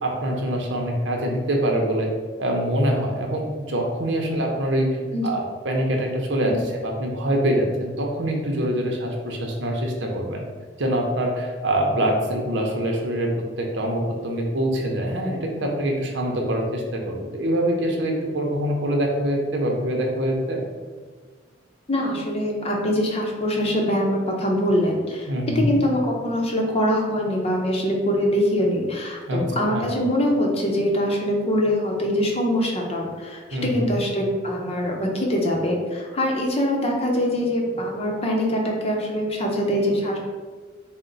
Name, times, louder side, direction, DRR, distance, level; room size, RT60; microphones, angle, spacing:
voice 1, 0.0-2.1 2.4-4.9 5.2-10.4 10.8-20.6 25.3-25.7 29.3-29.4 29.7-30.0 33.5-33.9, right 1 dB, 85° right, 1 dB, 0.7 m, -24 dB
voice 2, 21.9-25.3 25.5-40.2, equal, 35° left, 0 dB, 0.7 m, -23 dB
4.2 x 2.1 x 3.9 m, 1.5 s
head